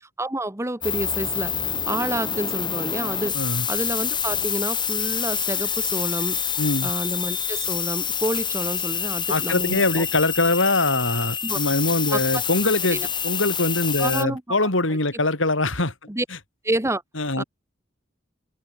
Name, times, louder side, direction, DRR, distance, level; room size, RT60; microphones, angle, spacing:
voice 1, 0.2-1.6 1.9-3.4 3.7-6.4 6.8-10.0 11.4-11.6 12.1-12.4 12.9-13.1 14.0-14.7 16.1-16.2 16.6-17.0 17.4-17.5, right 1 dB, 15° right, 1.7 m, -29 dB
sound 1, 0.8-14.2, left 7 dB, 25° left, 6.2 m, -27 dB
voice 2, 3.3-3.7 6.6-6.9 9.3-15.9 17.2-17.4, left 2 dB, 80° left, 4.5 m, -23 dB
head